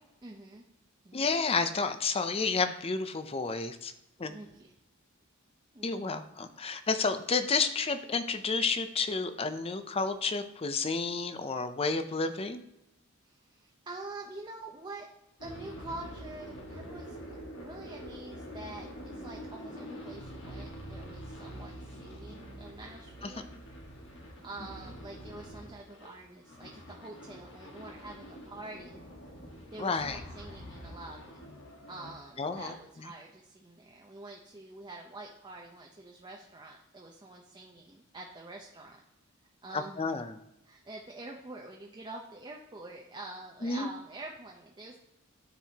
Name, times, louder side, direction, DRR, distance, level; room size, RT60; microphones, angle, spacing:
voice 1, 0.2-0.6 1.0-1.3 4.3-4.7 5.7-6.1 13.2-15.1 15.4-17.2 17.5-23.5 24.4-29.3 29.7-31.5 31.9-39.0 39.6-40.2 40.6-45.0, right 2 dB, 20° right, -1 dB, 0.7 m, -46 dB
voice 2, 1.1-3.9 4.2-4.3 5.8-12.6 29.8-30.2 32.4-32.7 39.7-40.3 43.6-43.9, left 4 dB, 30° left, 9 dB, 0.5 m, -31 dB
sound 1, 15.4-32.1 32.4-32.7, equal, 60° left, 1.5 m, -46 dB
12.5 x 4.7 x 2.8 m, 0.89 s
head